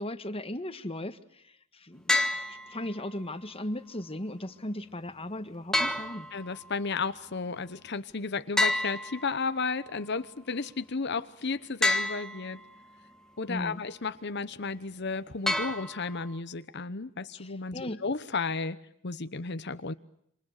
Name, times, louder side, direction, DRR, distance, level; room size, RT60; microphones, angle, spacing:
voice 1, 0.0-6.3 13.5-13.8 17.3-18.0, left 1 dB, 25° left, 10 dB, 1.6 m, -37 dB
sound 1, 2.1-3.1 5.7-6.8 8.6-9.8 11.8-12.8 15.5-16.4, left 2 dB, 5° left, 1.6 m, -30 dB
voice 2, 6.3-12.6 13.4-18.8 19.0-19.9, left 4 dB, 55° left, 12 dB, 1.0 m, -33 dB
28.5 x 26.5 x 6.6 m, 0.73 s
head